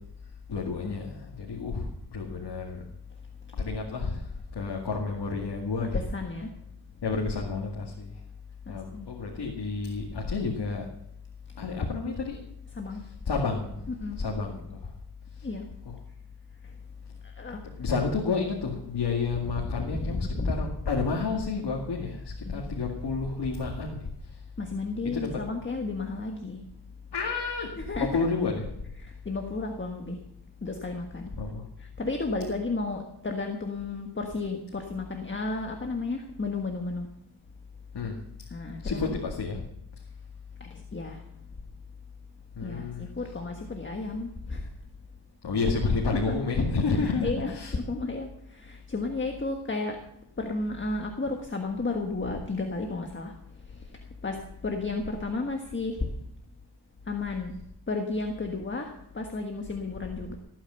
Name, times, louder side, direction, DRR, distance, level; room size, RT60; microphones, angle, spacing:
voice 1, 0.5-2.8 3.5-6.0 7.0-8.1 8.7-10.9 11.6-12.4 12.9-13.8 14.2-14.9 15.8-15.9 17.8-24.0 25.1-25.5 27.1-28.6 31.4-31.7 37.9-38.5 38.8-39.6 42.6-43.1 45.4-47.8, left 4 dB, 80° left, -1 dB, 2.2 m, -30 dB
voice 2, 5.8-6.5 8.7-9.1 12.7-13.0 14.0-14.2 15.4-15.6 16.6-16.7 17.2-17.6 19.6-20.6 22.5-22.6 24.6-26.6 27.9-28.1 29.0-30.2 30.6-31.3 31.8-37.1 38.5-39.2 40.6-41.2 42.6-44.7 46.3-46.4 46.9-50.0 50.4-53.3 53.6-56.1 57.1-57.5 57.9-60.4, left 3 dB, 30° left, 3 dB, 1.5 m, -33 dB
17.5 x 9.0 x 7.0 m, 0.79 s
wide cardioid pair, 115°, 40 cm